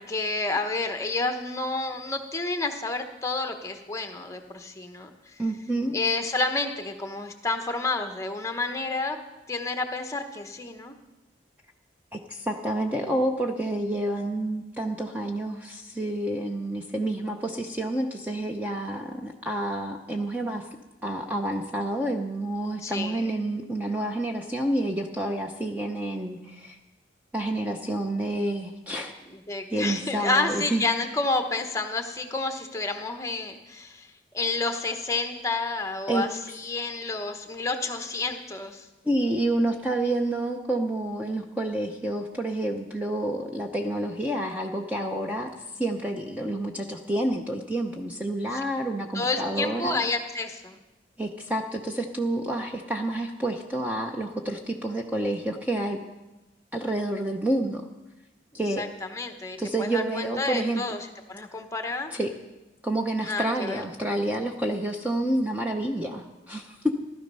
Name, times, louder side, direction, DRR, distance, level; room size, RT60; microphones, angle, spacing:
voice 1, 0.0-5.3 5.9-9.2 9.5-10.9 22.8-23.2 29.3-34.1 34.3-38.9 48.5-48.6 49.1-50.8 58.8-58.9 59.1-62.1 63.2-63.8, left 3 dB, 15° left, 5 dB, 1.0 m, -30 dB
voice 2, 5.4-6.0 12.1-20.7 21.0-26.8 27.3-29.1 29.7-30.8 36.1-36.2 39.0-50.0 51.2-56.0 56.7-57.9 58.5-58.9 59.6-60.9 62.1-62.3 62.8-66.9, right 1 dB, 10° right, 2 dB, 0.7 m, -29 dB
15.5 x 12.5 x 5.5 m, 1.1 s
head